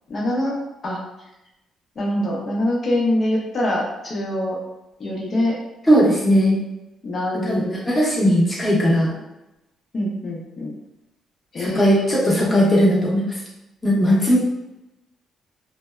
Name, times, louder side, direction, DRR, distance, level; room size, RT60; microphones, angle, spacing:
voice 1, 0.1-0.6 0.8-1.0 2.0-4.6 5.0-5.6 7.0-7.6 9.9-10.7 11.5-12.2, left 1 dB, 45° left, -3 dB, 0.8 m, -24 dB
voice 2, 5.9-6.5 7.4-9.1 11.6-13.3 13.8-14.4, equal, 15° left, -6 dB, 0.9 m, -18 dB
2.6 x 2.1 x 2.3 m, 0.94 s
cardioid pair, 90°, 0 cm